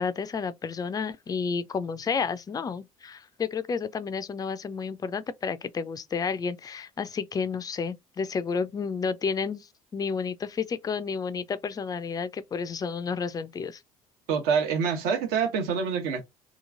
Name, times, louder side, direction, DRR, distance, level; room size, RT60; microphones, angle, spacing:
voice 1, 0.0-13.8, left 5 dB, 20° left, 0.4 m, -31 dB
voice 2, 14.3-16.2, right 6 dB, 55° right, 0.9 m, -26 dB
2.9 x 2.4 x 2.4 m
figure-of-eight pair, 60°, 19 cm